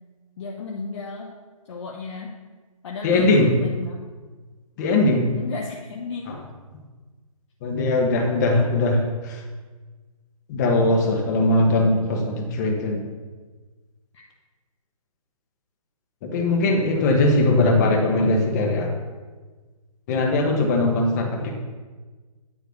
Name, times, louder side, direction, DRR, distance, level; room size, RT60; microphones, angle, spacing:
voice 1, 0.4-1.3 1.7-2.4 2.8-3.9 5.4-6.4 14.1-14.2 16.9-18.3, left 4 dB, 50° left, -1 dB, 0.9 m, -34 dB
voice 2, 3.0-3.6 4.8-5.3 6.3-6.4 7.6-9.4 10.5-13.0 16.2-18.9 20.1-21.5, left 2 dB, 30° left, 1 dB, 1.3 m, -20 dB
9.6 x 3.3 x 6.5 m, 1.4 s
figure-of-eight pair, 145°, 19 cm